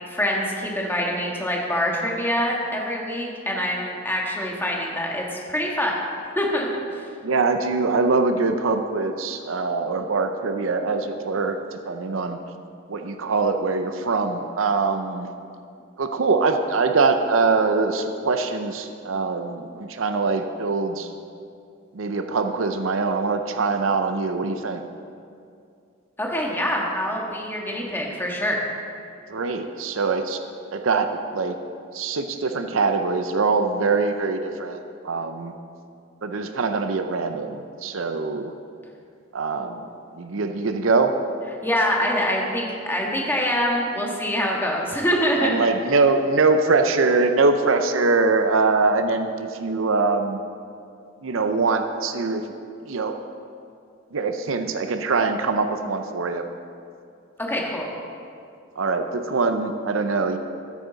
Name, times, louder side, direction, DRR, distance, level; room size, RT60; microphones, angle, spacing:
voice 1, 0.0-5.9 6.3-6.7 26.2-28.6 41.6-45.6 57.4-57.9, equal, 10° left, -2 dB, 1.5 m, -25 dB
voice 2, 7.2-12.4 12.9-15.3 16.0-21.1 21.9-24.8 29.3-30.4 30.7-31.6 31.9-35.5 36.2-38.5 39.3-39.8 40.1-41.1 45.4-50.4 51.2-52.4 52.9-53.2 54.1-56.4 58.8-60.4, right 4 dB, 70° right, 7 dB, 0.6 m, -23 dB
14.0 x 8.5 x 4.0 m, 2.4 s
head